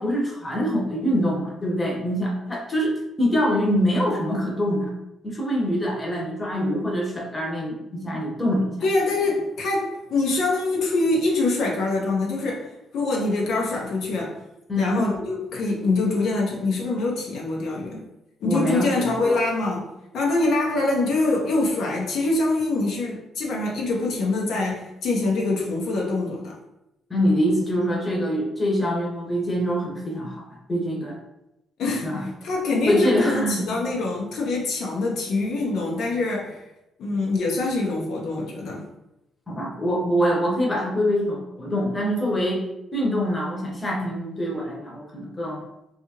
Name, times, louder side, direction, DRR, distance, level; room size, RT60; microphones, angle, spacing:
voice 1, 0.0-4.9 5.2-8.7 14.7-15.1 18.5-19.4 27.1-31.2 32.0-32.2 32.9-33.7 39.5-42.6 42.9-45.6, equal, 20° left, -2 dB, 0.8 m, -24 dB
voice 2, 8.8-14.4 14.8-18.0 18.4-26.6 31.8-36.6 37.0-38.8, left 2 dB, 75° left, -1 dB, 0.6 m, -24 dB
2.7 x 2.4 x 2.8 m, 0.88 s
cardioid pair, 90°, 0 cm